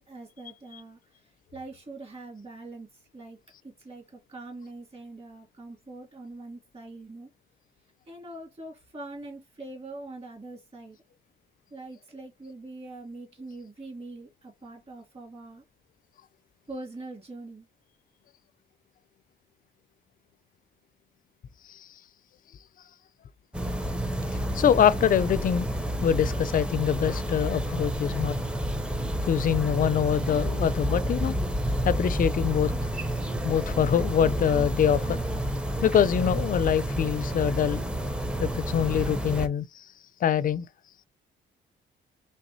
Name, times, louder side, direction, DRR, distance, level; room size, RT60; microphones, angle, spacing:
voice 1, 0.0-7.3 8.1-11.0 11.7-15.6 16.7-17.7, right 2 dB, 30° right, 2.3 m, -43 dB
sound 1, 23.5-39.5, equal, 5° right, 0.6 m, -29 dB
voice 2, 24.3-25.7 26.0-28.4 29.2-31.4 31.8-32.7 33.4-35.2 35.8-37.9 38.4-39.9 40.2-40.7, left 9 dB, 45° left, 0.4 m, -24 dB
4.0 x 3.3 x 2.6 m
cardioid pair, 90°, 20 cm